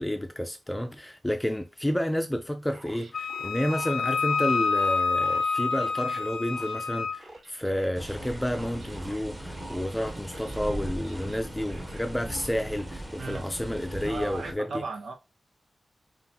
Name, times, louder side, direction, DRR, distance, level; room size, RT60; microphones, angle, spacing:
voice 1, 0.0-14.7, equal, 10° left, 0.4 m, -30 dB
sound 1, 2.7-9.2 9.6-12.5, right 1 dB, 65° right, 1.5 m, -48 dB
Wind instrument woodwind instrument, 3.1-7.2, left 4 dB, 80° left, 0.4 m, -27 dB
sound 2, 7.9-14.5, right 1 dB, 20° right, 1.0 m, -38 dB
voice 2, 14.0-15.1, right 4 dB, 85° right, 0.9 m, -36 dB
5.6 x 2.5 x 2.8 m
wide cardioid pair, 95°, 0 cm